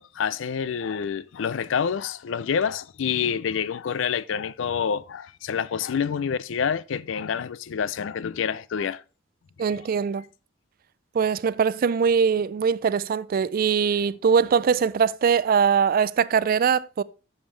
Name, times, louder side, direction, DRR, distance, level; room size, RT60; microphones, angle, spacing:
voice 1, 0.0-9.0, left 7 dB, 70° left, 0.4 m, -27 dB
voice 2, 9.6-10.2 11.1-17.0, right 6 dB, 45° right, 0.3 m, -22 dB
8.9 x 7.2 x 3.2 m
head